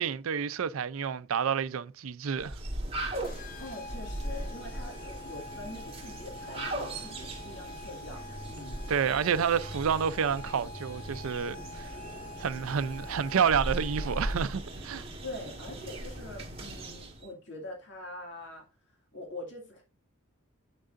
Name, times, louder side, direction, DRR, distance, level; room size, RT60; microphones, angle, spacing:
voice 1, 0.0-2.6 8.9-12.0 12.4-15.1, right 7 dB, 75° right, 0.4 m, -29 dB
sound 1, 2.4-17.3, right 1 dB, 25° right, 1.6 m, -39 dB
sound 2, 3.2-14.6, left 2 dB, 40° left, 0.5 m, -47 dB
voice 2, 3.6-8.8 15.2-19.8, left 2 dB, 55° left, 2.1 m, -44 dB
8.7 x 6.4 x 2.5 m
head